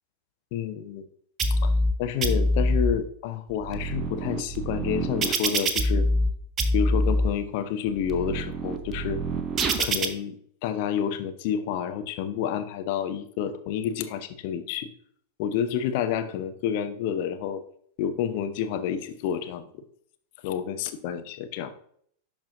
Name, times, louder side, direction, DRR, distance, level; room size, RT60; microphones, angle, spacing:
voice 1, 0.5-1.0 1.6-1.7 2.0-6.1 6.7-9.2 9.8-10.4 10.6-14.9 15.4-17.6 18.0-19.8 20.4-21.7, left 8 dB, 45° left, 9 dB, 0.7 m, -29 dB
sound 1, 1.4-1.9 2.2-2.9 3.5-6.3 6.6-7.3 7.9-10.1, equal, 25° right, 0.7 m, -25 dB
11.0 x 4.4 x 2.5 m, 0.63 s
figure-of-eight pair, 90°, 0 cm